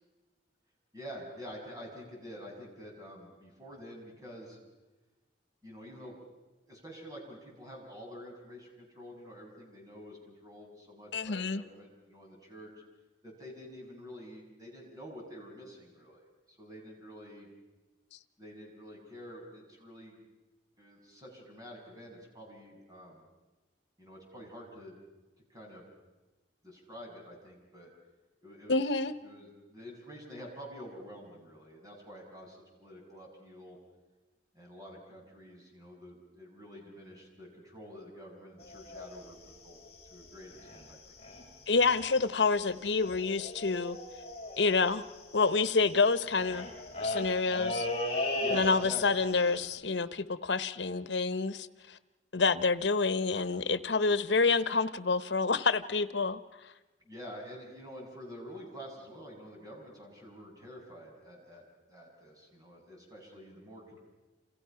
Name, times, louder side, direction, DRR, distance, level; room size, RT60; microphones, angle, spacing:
voice 1, 0.9-4.6 5.6-6.2 6.7-12.7 13.2-16.2 16.5-17.5 18.4-20.2 20.8-23.2 24.0-25.0 25.5-25.9 26.6-27.9 28.4-28.9 29.2-33.8 34.5-39.8 40.1-41.1 48.4-49.6 53.3-53.5 57.0-64.0, equal, 20° right, 7.1 m, -48 dB
voice 2, 11.1-11.6 28.7-29.1 41.7-44.0 44.6-45.1 45.3-46.7 47.0-47.9 48.5-52.0 52.3-56.4, left 4 dB, 85° left, 0.9 m, -28 dB
sound 1, 38.6-40.9 41.2-41.4 41.7-42.2 42.5-42.6 42.7-49.1 49.4-49.6, left 1 dB, 35° left, 7.8 m, -37 dB
29.0 x 28.5 x 5.8 m
head